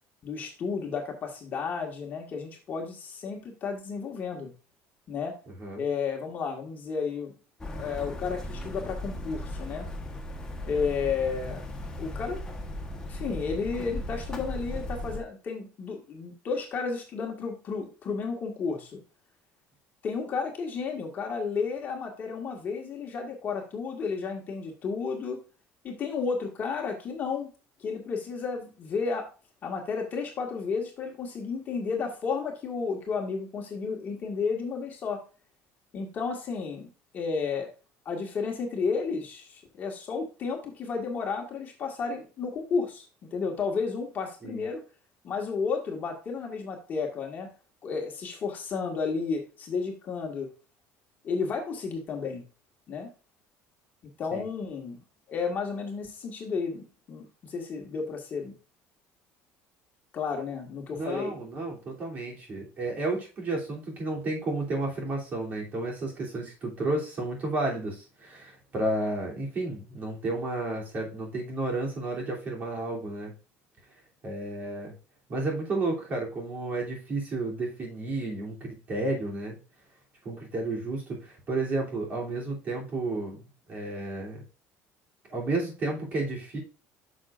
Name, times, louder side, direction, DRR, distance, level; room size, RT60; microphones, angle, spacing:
voice 1, 0.2-4.5 5.1-5.4 5.8-7.3 7.7-9.9 10.7-11.6 12.0-12.4 13.0-19.0 20.0-25.4 25.8-27.5 27.8-29.3 29.6-35.2 35.9-36.9 37.1-37.7 38.1-43.0 43.3-44.8 45.2-47.5 47.8-50.5 51.2-52.4 52.9-53.1 54.2-55.0 55.3-58.5 60.1-61.3, left 5 dB, 35° left, 1 dB, 1.8 m, -32 dB
sound 1, 7.6-15.2, left 1 dB, 15° left, 1.3 m, -37 dB
voice 2, 60.9-73.3 74.2-74.9 75.3-79.6 80.2-84.4 85.3-86.6, right 2 dB, 35° right, -2 dB, 3.1 m, -32 dB
9.4 x 6.4 x 2.5 m, 0.34 s
cardioid pair, 150°, 5 cm